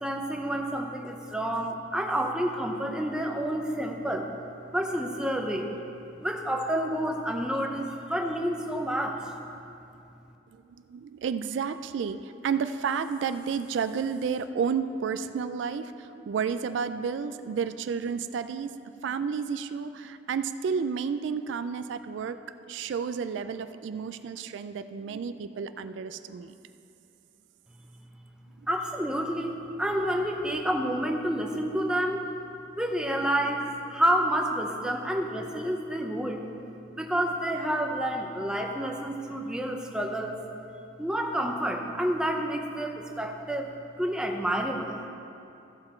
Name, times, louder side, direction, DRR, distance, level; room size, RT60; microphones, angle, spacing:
voice 1, 0.0-4.3 4.7-5.7 6.2-9.3 28.7-32.3 32.7-36.4 36.9-40.4 41.0-43.7 44.0-45.0, right 1 dB, 5° right, 2 dB, 0.6 m, -29 dB
voice 2, 10.9-18.7 19.0-22.4 22.7-26.6, right 6 dB, 70° right, 11 dB, 0.3 m, -31 dB
14.5 x 5.8 x 4.4 m, 2.7 s
head